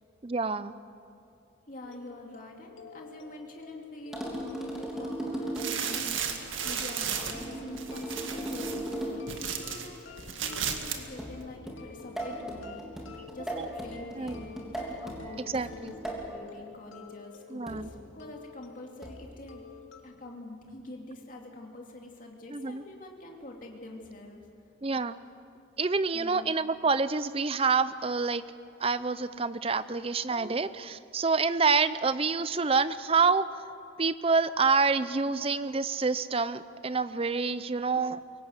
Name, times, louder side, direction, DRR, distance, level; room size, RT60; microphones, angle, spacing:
voice 1, 0.2-0.7 13.6-13.7 14.2-14.4 15.5-15.9 17.5-17.9 22.5-22.8 24.8-25.1 25.8-28.4 28.8-33.5 34.0-38.2, right 4 dB, 30° right, 14 dB, 0.5 m, -27 dB
voice 2, 1.7-14.6 15.0-19.7 20.0-24.4 26.1-26.5, left 1 dB, 40° left, 1 dB, 2.7 m, -45 dB
sound 1, 1.8-20.0, left 7 dB, 85° left, 2.5 m, -51 dB
sound 2, 4.1-5.9 7.3-9.3 11.2-16.3 17.7-18.0 19.0-19.3, right 1 dB, ahead, 3.1 m, -37 dB
sound 3, 5.6-9.9 10.2-11.0 11.3-11.4, right 7 dB, 75° right, 1.9 m, -34 dB
23.0 x 18.0 x 8.0 m, 2.6 s
head